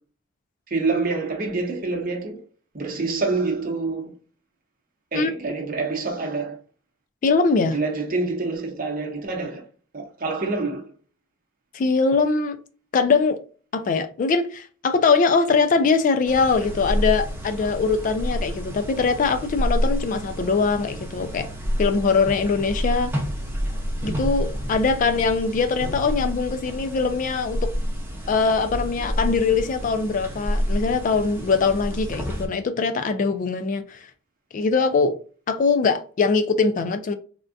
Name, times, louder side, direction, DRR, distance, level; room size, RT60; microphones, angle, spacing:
voice 1, 0.7-2.4 2.7-4.1 5.1-6.6 7.7-9.6 9.9-10.8, right 3 dB, 45° right, 0.8 m, -26 dB
voice 2, 7.2-7.8 11.7-12.6 12.9-13.4 13.7-21.5 21.8-23.1 24.0-27.7 28.3-34.1 34.5-35.1 35.5-37.1, left 4 dB, 40° left, 0.3 m, -22 dB
sound 1, 16.2-32.5, equal, 10° right, 0.7 m, -29 dB
3.5 x 2.3 x 2.5 m
head